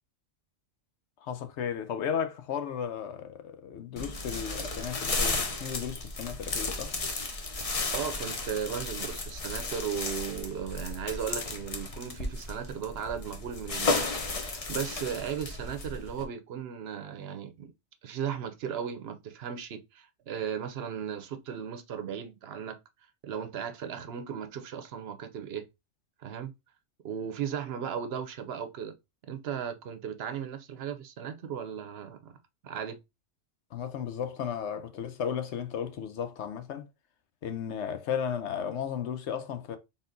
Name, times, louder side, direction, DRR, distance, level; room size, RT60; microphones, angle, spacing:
voice 1, 1.2-6.9 33.7-36.8 37.4-39.8, left 8 dB, 75° left, 0.9 m, -34 dB
sound 1, 4.0-16.2, left 3 dB, 35° left, 0.7 m, -34 dB
voice 2, 7.9-17.7 18.0-22.8 23.2-25.7 26.2-26.5 27.0-29.0 29.3-32.3 32.6-33.0, right 8 dB, 60° right, 0.8 m, -36 dB
4.1 x 3.7 x 2.6 m
omnidirectional pair, 1.2 m